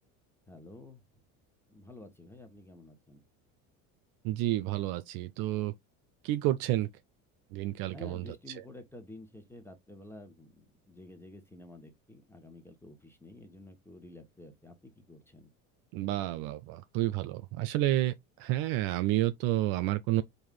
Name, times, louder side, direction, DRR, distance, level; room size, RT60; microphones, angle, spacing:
voice 1, 0.5-1.0 1.7-3.2 7.9-15.5, left 2 dB, 5° left, 1.3 m, -50 dB
voice 2, 4.2-5.7 6.2-6.9 7.5-8.5 15.9-20.2, right 15 dB, 55° right, 0.5 m, -30 dB
4.6 x 2.6 x 3.7 m
hypercardioid pair, 70°, 44 cm